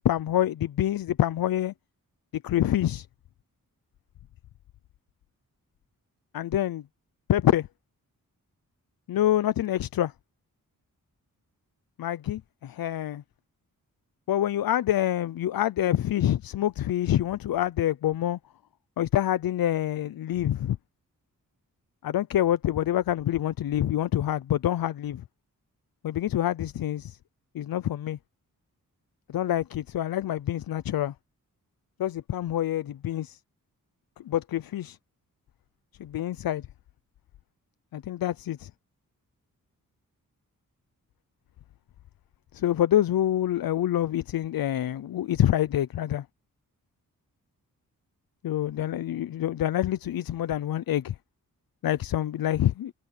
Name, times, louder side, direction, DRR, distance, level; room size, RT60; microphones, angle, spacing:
voice 1, 0.0-1.7 2.3-3.1 6.3-6.8 7.3-7.7 9.1-10.1 12.0-13.2 14.3-18.4 19.0-20.8 22.0-25.2 26.0-27.2 27.5-28.2 29.3-31.1 32.0-33.4 34.3-35.0 36.0-36.6 37.9-38.7 42.5-46.2 48.4-51.1 51.8-52.9, left 12 dB, 85° left, 0.6 m, -26 dB
wide cardioid pair, 85°, 34 cm